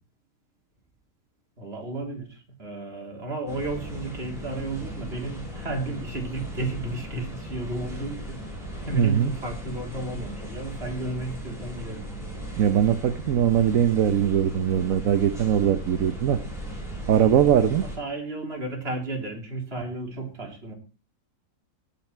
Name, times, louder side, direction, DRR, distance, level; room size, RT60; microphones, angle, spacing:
voice 1, 1.6-12.2 17.8-20.7, right 2 dB, 40° right, 1 dB, 3.6 m, -33 dB
sound 1, 3.5-18.0, equal, ahead, 7.4 m, -37 dB
voice 2, 8.9-9.3 12.6-16.4 17.1-17.8, right 9 dB, 65° right, 10 dB, 1.2 m, -21 dB
18.0 x 8.9 x 4.6 m, 0.35 s
omnidirectional pair, 1.6 m